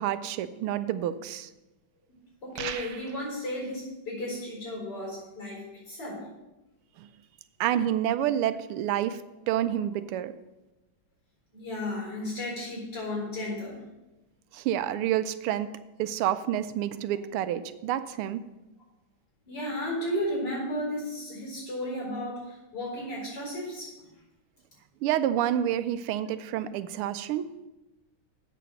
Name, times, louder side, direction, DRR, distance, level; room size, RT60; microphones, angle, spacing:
voice 1, 0.0-1.5 7.6-9.2 9.5-10.3 14.5-15.7 16.0-18.4 25.0-27.5, right 11 dB, 90° right, 13 dB, 1.5 m, -28 dB
voice 2, 2.1-6.3 11.5-13.8 19.5-24.1, left 1 dB, 50° left, -2 dB, 4.9 m, -34 dB
sound 1, 2.6-3.3, right 9 dB, 70° right, 1.1 m, -37 dB
8.4 x 6.9 x 6.5 m, 1.0 s
omnidirectional pair, 2.4 m